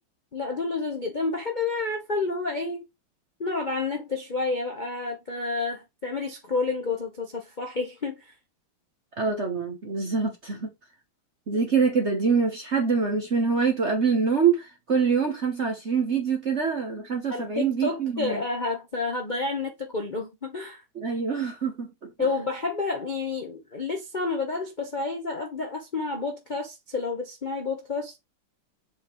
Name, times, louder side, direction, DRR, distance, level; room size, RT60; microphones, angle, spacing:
voice 1, 0.3-2.9 3.4-8.3 17.3-20.8 22.2-28.2, left 3 dB, 40° left, 0.7 m, -30 dB
voice 2, 9.2-10.7 11.5-18.4 20.9-21.9, right 5 dB, 45° right, 1.0 m, -25 dB
7.4 x 4.3 x 3.1 m
omnidirectional pair, 2.4 m